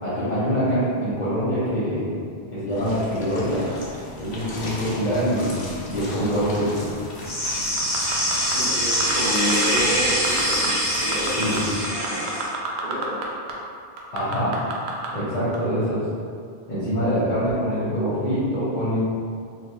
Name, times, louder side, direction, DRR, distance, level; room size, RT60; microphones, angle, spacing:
voice 1, 0.0-2.1 2.5-3.6 4.2-5.6 5.9-6.9 11.4-11.6 14.1-14.5 15.1-16.0 16.7-19.0, equal, 45° left, -13 dB, 1.0 m, -24 dB
sound 1, 2.7-11.8, left 1 dB, 80° left, 0.9 m, -36 dB
sound 2, 7.2-12.5, equal, 10° left, 1.1 m, -24 dB
sound 3, 7.8-8.5 8.9-9.8 10.1-10.7 10.9-13.2 13.5-13.6 14.0-15.1 15.5-15.6, right 5 dB, 80° right, 0.8 m, -29 dB
voice 2, 8.5-12.5 12.8-13.1, equal, 45° right, -11 dB, 0.7 m, -29 dB
3.9 x 3.0 x 2.8 m, 2.3 s
omnidirectional pair, 1.1 m